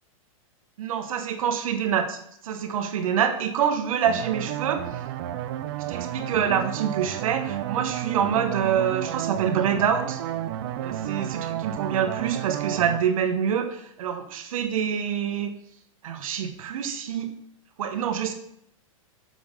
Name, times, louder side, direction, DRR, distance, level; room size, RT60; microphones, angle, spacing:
voice 1, 0.8-4.8 5.9-10.2 10.8-15.5 16.0-17.3 17.8-18.3, right 8 dB, 70° right, 7 dB, 1.1 m, -26 dB
sound 1, 4.1-13.0, right 12 dB, 45° right, 0.5 m, -31 dB
7.1 x 6.4 x 3.6 m, 0.75 s
hypercardioid pair, 150°, 18 cm